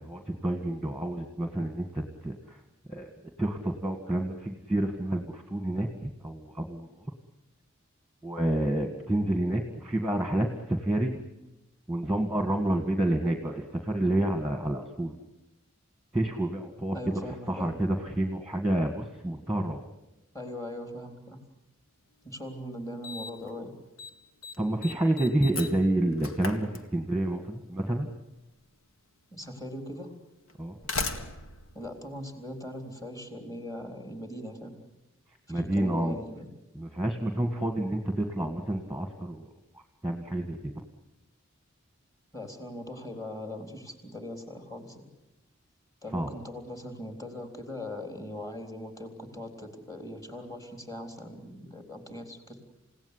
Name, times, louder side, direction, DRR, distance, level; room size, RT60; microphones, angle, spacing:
voice 1, 0.0-2.6 2.9-3.1 3.4-6.9 8.2-11.2 11.9-15.2 16.1-17.0 17.3-19.9 24.6-28.1 30.6-30.8 35.5-36.2 36.8-39.5 40.0-40.7 46.1-46.3, right 1 dB, ahead, 5 dB, 1.8 m, -29 dB
voice 2, 16.9-17.7 20.3-21.4 22.2-23.7 29.3-30.1 31.7-34.7 35.5-36.5 42.3-45.0 46.0-52.6, left 1 dB, 15° left, 5 dB, 3.8 m, -40 dB
Slam, 22.2-22.3 23.0-23.5 23.8-24.1 24.4-27.4 28.5-28.6 29.5-29.6 30.5-32.8, left 3 dB, 90° left, 2.0 m, -38 dB
29.0 x 17.0 x 9.9 m, 0.96 s
head